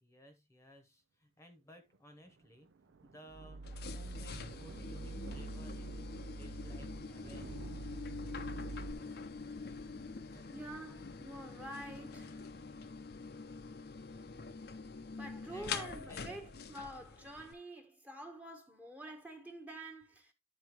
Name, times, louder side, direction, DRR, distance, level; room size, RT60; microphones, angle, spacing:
voice 1, 0.0-2.7 3.0-3.7 3.9-7.5 10.3-10.6 15.5-16.4, equal, 15° left, 0.9 m, -58 dB
Thunder, 1.9-11.3 11.6-11.9 12.2-12.3 12.4-12.5, right 4 dB, 85° right, 0.5 m, -57 dB
sound 1, 3.3-8.9, right 2 dB, 25° right, 0.4 m, -46 dB
sound 2, 3.6-17.5, left 4 dB, 55° left, 0.6 m, -45 dB
voice 2, 10.5-12.5 15.2-20.3, right 1 dB, 10° right, 1.0 m, -47 dB
11.0 x 4.3 x 2.9 m
head